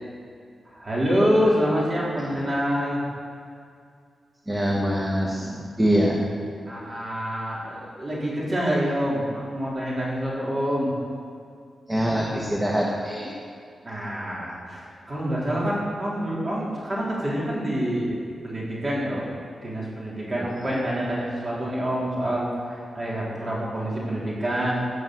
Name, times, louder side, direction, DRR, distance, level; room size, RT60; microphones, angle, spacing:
voice 1, 0.7-3.0 6.7-10.9 13.8-18.2 18.4-19.3 19.6-24.7, equal, 30° right, -5 dB, 4.0 m, -26 dB
voice 2, 4.5-6.3 11.9-13.3 20.4-20.8, equal, 15° right, -3 dB, 1.5 m, -24 dB
17.0 x 6.2 x 8.1 m, 2.3 s
wide cardioid pair, 125°, 0 cm